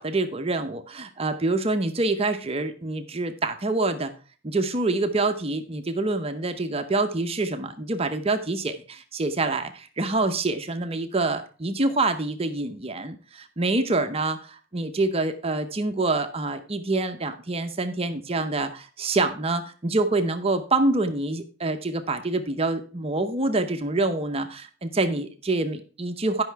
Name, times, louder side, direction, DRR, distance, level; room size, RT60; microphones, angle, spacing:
voice 1, 0.0-4.1 4.4-26.4, right 2 dB, 30° right, 7 dB, 0.7 m, -26 dB
10.5 x 5.6 x 4.6 m, 0.38 s
head